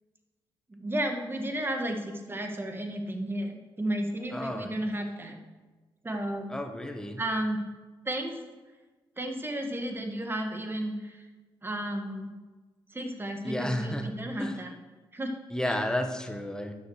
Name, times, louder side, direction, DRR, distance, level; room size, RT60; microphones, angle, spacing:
voice 1, 0.7-5.4 6.0-6.5 7.2-7.6 8.0-8.4 9.2-11.3 11.6-12.3 12.9-14.7 15.1-15.4 15.7-15.8, right 1 dB, 20° right, 4 dB, 1.8 m, -33 dB
voice 2, 4.3-4.7 6.5-7.2 13.4-14.1 14.4-14.6 15.5-16.7, left 1 dB, 5° left, 5 dB, 1.4 m, -32 dB
10.0 x 6.3 x 6.5 m, 1.3 s
cardioid pair, 70°, 10 cm